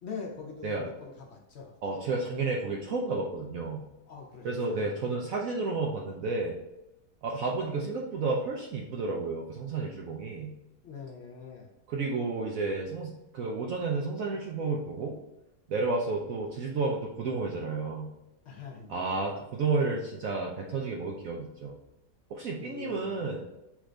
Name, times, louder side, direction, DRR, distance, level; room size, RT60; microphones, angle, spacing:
voice 1, 0.0-1.8 4.1-4.9 10.8-11.7 18.4-19.1 22.6-23.3, left 5 dB, 75° left, 0 dB, 0.6 m, -43 dB
voice 2, 1.8-3.8 4.4-6.6 7.2-10.5 11.9-15.2 15.7-18.1 18.9-21.8 22.3-23.4, right 3 dB, 70° right, 0 dB, 0.8 m, -31 dB
6.0 x 2.5 x 3.2 m, 0.93 s
omnidirectional pair, 1.9 m